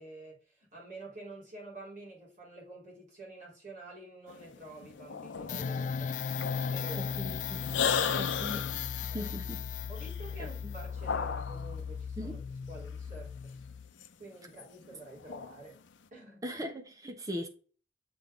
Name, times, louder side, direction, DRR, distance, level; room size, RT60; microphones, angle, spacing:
voice 1, 0.0-6.1 6.7-7.2 7.9-9.4 9.9-12.4 12.7-13.6 14.2-15.8 16.1-16.4, right 2 dB, 45° right, 3.6 m, -48 dB
sound 1, 4.3-11.8 12.7-14.1 14.4-15.8, left 6 dB, 85° left, 0.6 m, -36 dB
sound 2, 5.5-13.9, left 6 dB, 45° left, 0.3 m, -37 dB
voice 2, 7.0-7.7 8.1-8.6 9.1-9.7 10.4-10.7 12.2-12.4 16.4-17.5, equal, 20° right, 1.0 m, -39 dB
7.7 x 3.8 x 3.7 m
head